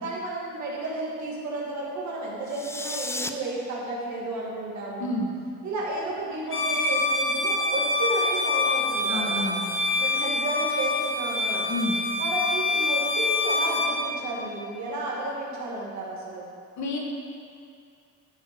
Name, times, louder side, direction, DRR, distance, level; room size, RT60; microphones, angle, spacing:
voice 1, 0.0-5.1 5.6-9.5 10.0-11.8 12.2-16.5, right 2 dB, 70° right, -4 dB, 2.2 m, -32 dB
sound 1, 2.4-3.3, left 2 dB, 10° left, 0.4 m, -33 dB
Bowed string instrument, 6.5-14.0, left 2 dB, 40° left, 1.4 m, -26 dB
voice 2, 9.1-9.7 11.7-11.9 16.8-17.0, left 2 dB, 70° left, -1 dB, 1.6 m, -29 dB
12.5 x 5.6 x 3.8 m, 2.4 s
cardioid pair, 90°, 30 cm